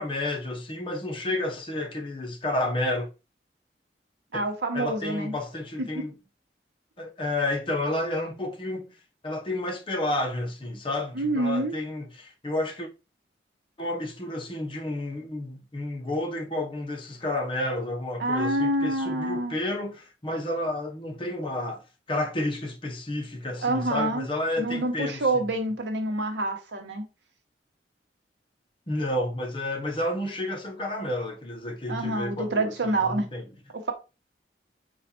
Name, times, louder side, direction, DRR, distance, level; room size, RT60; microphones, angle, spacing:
voice 1, 0.0-3.1 4.3-4.4 4.7-6.1 7.0-8.9 9.2-12.9 13.8-21.8 22.1-25.4 28.9-33.4, left 1 dB, 30° left, 0.7 m, -31 dB
voice 2, 4.3-5.3 5.8-6.0 11.1-11.8 18.2-19.5 23.6-24.3 24.6-27.1 31.9-33.3 33.7-33.9, right 2 dB, 80° right, 0.9 m, -27 dB
4.2 x 2.4 x 4.2 m
head